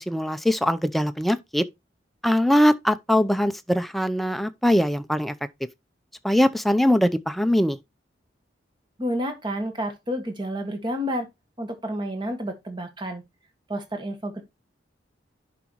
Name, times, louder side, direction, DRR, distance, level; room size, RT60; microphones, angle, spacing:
voice 1, 0.0-1.6 2.2-5.3 6.2-7.8, equal, ahead, 0.5 m, -21 dB
voice 2, 9.0-11.3 11.6-13.2 13.7-14.4, equal, 25° right, 1.5 m, -30 dB
11.0 x 5.1 x 3.0 m
head